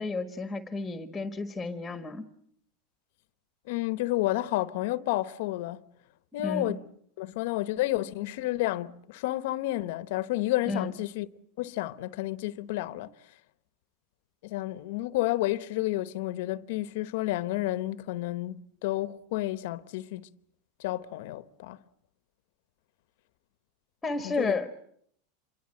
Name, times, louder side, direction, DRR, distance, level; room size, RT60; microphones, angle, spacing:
voice 1, 0.0-2.3 6.4-6.8 10.7-10.9 24.0-24.7, left 3 dB, 10° left, 1.5 m, -32 dB
voice 2, 3.7-5.8 6.3-6.8 7.2-11.3 11.6-13.1 14.4-20.3 20.8-21.8 24.2-24.5, left 16 dB, 70° left, 1.0 m, -30 dB
27.0 x 23.5 x 7.7 m
supercardioid pair, 135°, 0 cm